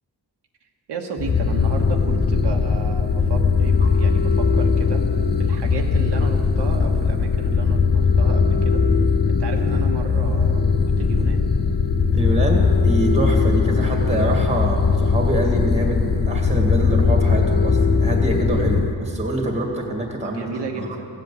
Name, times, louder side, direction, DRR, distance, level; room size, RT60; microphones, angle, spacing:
voice 1, 0.9-5.0 5.4-8.8 9.3-10.6 11.0-11.5 20.2-21.1, right 4 dB, 90° right, 1 dB, 1.3 m, -33 dB
sound 1, 1.2-18.9, left 5 dB, 25° left, 0.6 m, -19 dB
voice 2, 12.1-20.5 20.8-21.0, right 1 dB, 15° right, 1 dB, 2.0 m, -25 dB
16.0 x 7.8 x 8.4 m, 2.4 s
wide cardioid pair, 150°, 40 cm